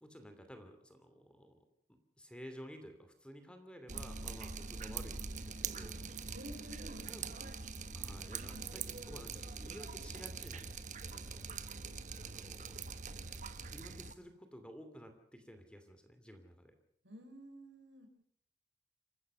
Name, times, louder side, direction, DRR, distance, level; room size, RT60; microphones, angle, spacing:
voice 1, 0.0-1.6 1.9-6.0 7.1-7.3 7.9-10.7 11.1-11.6 12.2-12.8 13.7-16.7, equal, 5° left, 7 dB, 2.6 m, -53 dB
Drip, 3.9-14.1, right 5 dB, 45° right, 1.2 m, -43 dB
voice 2, 4.6-5.1 6.3-7.5 8.5-8.7 17.0-18.1, equal, 85° right, 5 dB, 5.7 m, -52 dB
28.0 x 15.0 x 6.7 m, 0.66 s
head